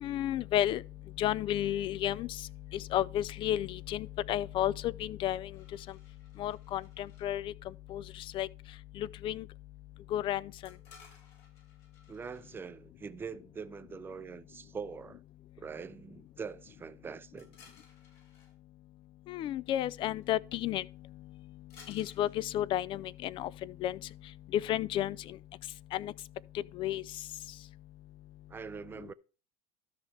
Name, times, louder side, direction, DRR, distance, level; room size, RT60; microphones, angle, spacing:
voice 1, 0.0-0.8 1.2-2.3 2.9-5.5 6.4-6.8 7.2-7.5 7.9-8.0 8.3-8.5 9.0-9.4 10.1-10.4 19.3-20.8 21.9-23.5 23.8-24.0 24.5-25.2 25.9-26.1 26.8-27.0, left 12 dB, 40° left, 0.4 m, -31 dB
sound 1, 5.5-7.3 10.7-12.6 17.4-18.5 20.2-20.3 20.5-20.8 21.7-23.1, left 5 dB, 60° left, 5.1 m, -59 dB
voice 2, 12.1-15.2 15.6-17.6 28.5-29.1, right 5 dB, 15° right, 0.5 m, -43 dB
13.0 x 5.7 x 3.3 m
supercardioid pair, 110°, 13 cm